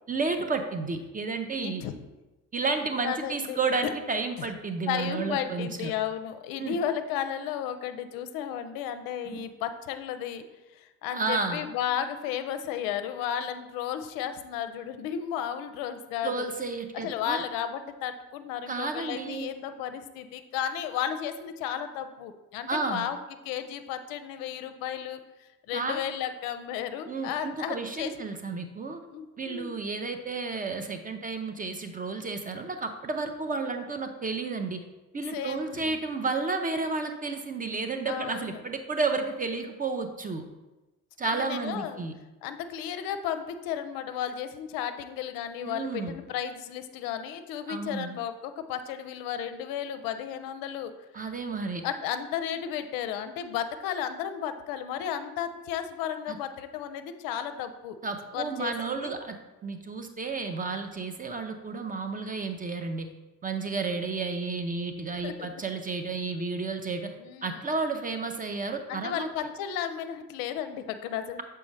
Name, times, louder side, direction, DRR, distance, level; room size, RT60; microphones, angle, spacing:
voice 1, 0.1-1.9 2.5-5.9 6.6-6.7 11.1-11.6 16.2-17.4 18.7-19.5 22.7-23.1 25.7-26.0 27.1-29.0 29.4-34.8 35.1-40.4 41.2-42.1 45.6-46.2 47.7-48.1 51.1-51.8 56.3-56.4 58.0-59.4 59.6-63.1 63.4-67.1 67.4-69.5, right 4 dB, 20° right, 6 dB, 0.5 m, -32 dB
voice 2, 1.6-1.9 3.0-3.6 4.9-10.4 10.7-16.5 17.0-23.2 23.4-28.1 29.1-29.7 35.3-35.8 38.1-38.6 41.2-42.0 42.4-51.0 51.8-58.0 58.3-59.1 65.2-65.5 67.2-67.6 68.9-71.4, left 9 dB, 55° left, 9 dB, 0.6 m, -34 dB
7.1 x 4.5 x 3.1 m, 1.1 s
figure-of-eight pair, 50°, 43 cm